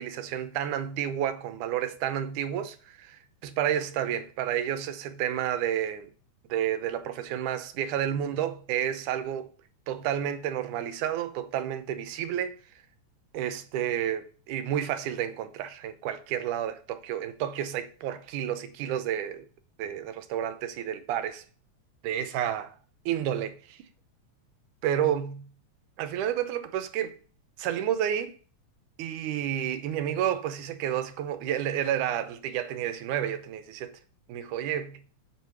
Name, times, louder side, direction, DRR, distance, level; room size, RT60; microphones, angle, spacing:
voice 1, 0.0-6.1 6.5-9.5 9.9-12.6 13.3-19.5 19.8-21.4 22.0-22.7 23.1-23.8 24.8-25.5 26.0-27.2 27.6-28.4 29.0-33.9 34.3-35.0, right 10 dB, 85° right, 2.3 m, -30 dB
7.5 x 4.7 x 5.6 m
omnidirectional pair, 3.5 m